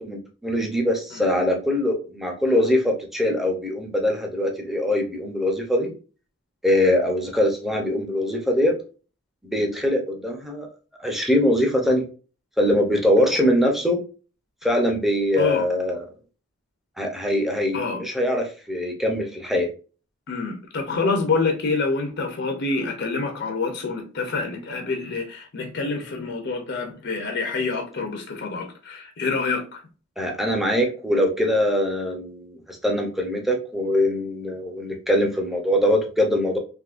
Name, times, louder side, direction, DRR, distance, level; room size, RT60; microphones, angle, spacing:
voice 1, 0.0-5.9 6.6-8.8 9.4-10.7 11.0-12.0 12.6-14.0 14.6-16.0 17.0-19.7 30.2-36.6, left 1 dB, ahead, 0.6 m, -22 dB
voice 2, 20.3-29.8, left 3 dB, 50° left, 0.6 m, -27 dB
3.6 x 2.6 x 2.4 m
head